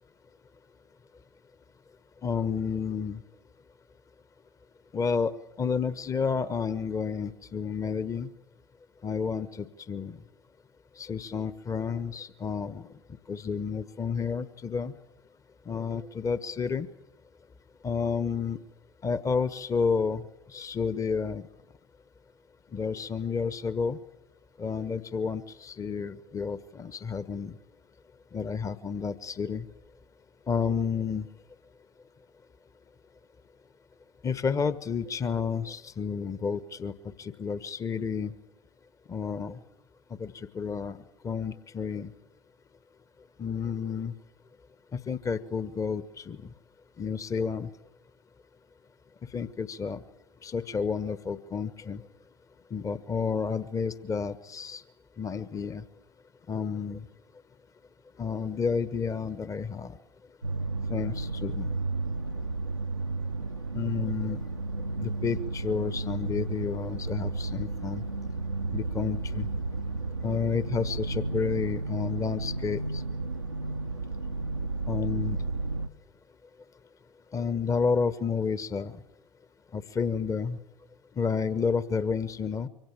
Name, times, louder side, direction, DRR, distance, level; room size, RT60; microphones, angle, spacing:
voice 1, 2.2-3.2 4.9-5.3 5.6-8.3 9.0-10.2 11.0-12.9 13.3-14.9 15.7-16.9 17.8-18.6 19.0-20.2 20.5-21.5 22.7-24.0 24.6-27.5 28.3-29.7 30.5-31.3 34.2-38.3 39.1-39.6 40.2-41.0 41.2-42.1 43.4-44.1 44.9-46.4 47.0-47.7 49.3-50.0 50.4-52.0 52.7-54.8 55.2-55.8 56.5-57.0 58.2-60.0 60.9-61.7 63.7-64.4 65.0-68.0 68.7-69.5 70.2-73.0 74.9-75.4 77.3-79.0 79.7-80.6 81.2-82.7, left 5 dB, 20° left, 14 dB, 1.4 m, -30 dB
sound 1, 60.4-75.9, right 3 dB, 85° right, 0.9 m, -33 dB
26.0 x 24.5 x 7.4 m, 0.84 s
figure-of-eight pair, 75°, 14 cm